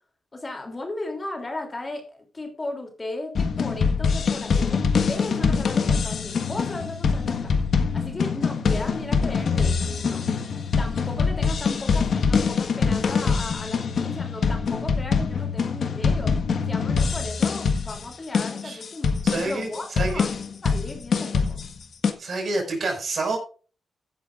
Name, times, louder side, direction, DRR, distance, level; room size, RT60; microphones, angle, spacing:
voice 1, 0.3-7.5 7.9-16.4 16.6-19.1 19.4-20.3 20.6-21.6, left 2 dB, 25° left, 4 dB, 3.1 m, -36 dB
sound 1, 3.3-22.1, left 5 dB, 60° left, 1.5 m, -24 dB
voice 2, 19.2-19.7 20.0-20.3 22.2-23.4, right 3 dB, 50° right, 3 dB, 5.5 m, -28 dB
15.5 x 10.5 x 2.5 m, 0.38 s
wide cardioid pair, 125°, 0 cm